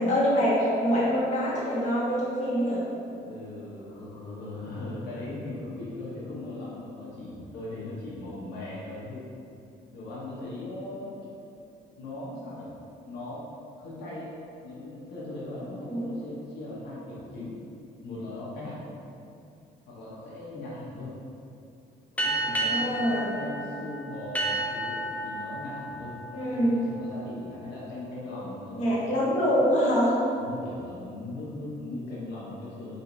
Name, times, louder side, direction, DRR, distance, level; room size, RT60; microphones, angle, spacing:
voice 1, 0.0-2.8 15.8-16.0 22.5-23.3 26.3-26.9 28.7-30.1, equal, 45° left, -7 dB, 1.4 m, -25 dB
voice 2, 3.2-9.3 9.9-11.2 12.0-12.7 13.0-13.4 13.8-14.3 14.6-17.6 18.0-18.8 19.9-21.1 22.1-29.6 30.4-33.0, left 2 dB, 80° left, -8 dB, 1.1 m, -39 dB
sound 1, 22.2-27.3, right 1 dB, 10° left, 0.6 m, -32 dB
4.2 x 2.8 x 3.9 m, 2.6 s
cardioid pair, 110°, 17 cm